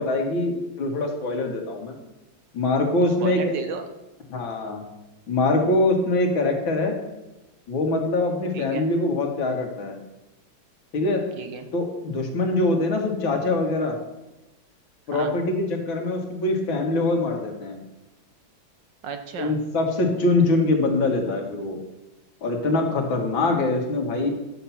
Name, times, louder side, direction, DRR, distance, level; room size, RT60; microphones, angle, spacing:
voice 1, 0.0-1.9 2.5-3.5 4.3-4.8 5.3-6.9 7.7-10.0 10.9-11.2 11.7-14.0 15.1-17.8 19.4-21.8 22.4-24.3, left 2 dB, 75° left, 2 dB, 2.3 m, -23 dB
voice 2, 3.2-3.9 8.5-8.9 11.4-11.7 15.1-15.3 19.0-19.6, right 6 dB, 70° right, 7 dB, 1.6 m, -33 dB
11.0 x 7.1 x 5.7 m, 1.0 s
omnidirectional pair, 2.1 m